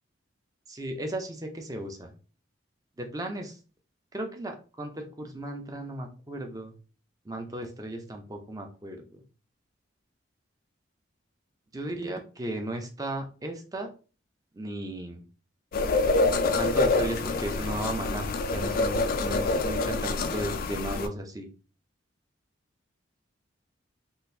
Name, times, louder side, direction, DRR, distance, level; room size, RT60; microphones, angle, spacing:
voice 1, 0.7-2.1 3.0-3.6 4.1-6.7 7.3-9.2 11.7-13.9 14.5-15.2 16.5-21.5, right 1 dB, 20° right, 4 dB, 0.5 m, -35 dB
sound 1, 15.7-21.1, left 3 dB, 50° left, 0.3 m, -26 dB
3.8 x 2.5 x 2.6 m, 0.36 s
head